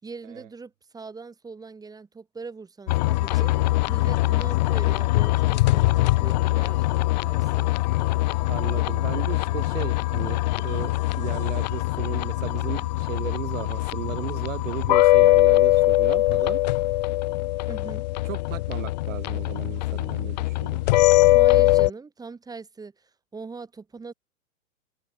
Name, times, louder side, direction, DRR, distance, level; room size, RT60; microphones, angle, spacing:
voice 1, 0.0-3.5 3.9-7.7 17.7-18.0 21.3-24.1, right 4 dB, 10° right, 3.9 m, -41 dB
sound 1, 2.9-21.9, left 18 dB, 35° left, 0.5 m, -22 dB
voice 2, 8.5-16.6 18.2-20.9, right 13 dB, 65° right, 0.8 m, -35 dB
open air
hypercardioid pair, 130°, 42 cm